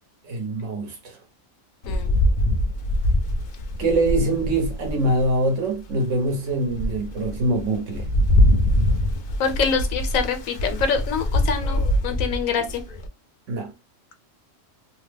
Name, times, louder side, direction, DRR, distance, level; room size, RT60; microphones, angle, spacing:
voice 1, 0.2-1.2 3.8-8.1 13.5-13.7, right 2 dB, 65° right, 1.2 m, -24 dB
Rain, 1.8-5.4 5.9-6.0 6.5-13.1, left 1 dB, 60° left, 0.6 m, -23 dB
voice 2, 9.4-12.8, left 6 dB, 80° left, 1.1 m, -25 dB
2.8 x 2.0 x 3.3 m
omnidirectional pair, 1.4 m